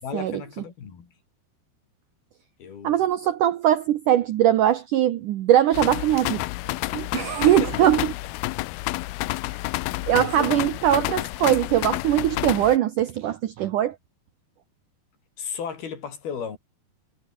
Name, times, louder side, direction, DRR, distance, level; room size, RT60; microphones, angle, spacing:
voice 1, 0.0-1.1 2.6-3.1 7.5-7.9 10.1-10.6 15.4-16.6, left 7 dB, 65° left, 5.6 m, -35 dB
voice 2, 2.8-6.4 6.9-8.0 9.5-9.6 10.1-14.0, right 11 dB, 75° right, 2.0 m, -21 dB
sound 1, 5.7-12.8, left 20 dB, 80° left, 2.4 m, -29 dB
omnidirectional pair, 4.9 m